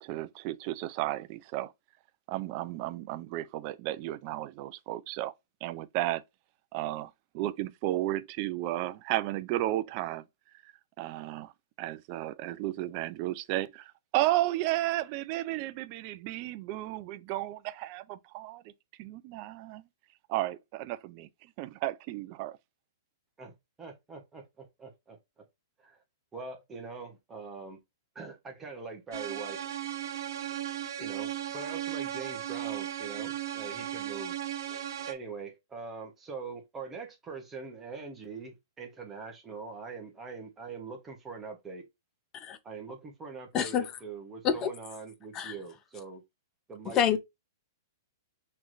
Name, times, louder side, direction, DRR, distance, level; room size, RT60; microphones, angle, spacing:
voice 1, 0.0-1.7 2.3-5.3 5.6-6.2 6.7-10.2 10.6-10.7 11.0-11.5 11.8-18.6 19.0-19.8 20.3-22.6, right 15 dB, 30° right, 0.4 m, -33 dB
voice 2, 23.4-25.4 25.8-26.0 26.3-27.8 28.1-29.6 31.0-34.3 34.7-41.8 42.6-46.2 46.7-47.2, right 4 dB, 10° right, 1.0 m, -43 dB
sound 1, 29.1-35.1, right 11 dB, 65° right, 1.2 m, -36 dB
voice 3, 46.9-47.2, left 8 dB, 20° left, 0.6 m, -27 dB
5.9 x 3.1 x 2.6 m
hypercardioid pair, 160°, 2 cm